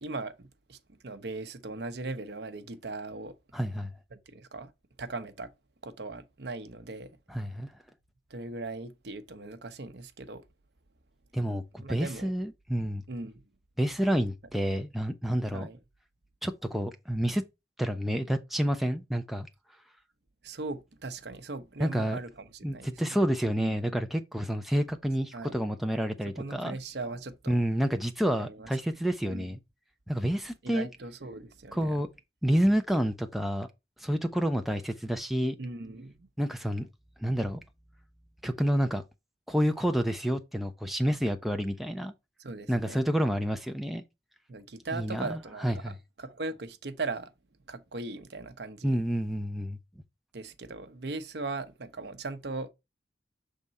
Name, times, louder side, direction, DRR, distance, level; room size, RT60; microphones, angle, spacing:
voice 1, 0.0-3.3 4.1-4.7 5.0-5.5 5.8-7.2 8.3-10.4 11.8-12.3 13.1-13.4 15.5-15.8 20.4-23.2 23.6-24.0 25.3-25.6 26.3-27.6 28.4-28.7 29.3-29.6 30.6-32.0 35.6-36.3 42.4-43.0 44.5-47.3 47.7-49.0 50.3-52.7, right 3 dB, 70° right, 0.8 m, -39 dB
voice 2, 3.5-3.9 7.3-7.7 11.3-13.0 13.8-15.7 16.4-17.4 17.8-19.5 21.8-22.2 22.6-26.8 27.5-29.6 30.1-30.9 31.7-32.1 32.4-33.7 34.0-35.6 36.4-36.9 37.2-37.6 38.4-39.0 39.5-42.1 42.7-44.0 44.9-45.4 45.6-45.9 48.8-49.8, equal, ahead, 0.5 m, -29 dB
6.5 x 3.6 x 4.1 m
head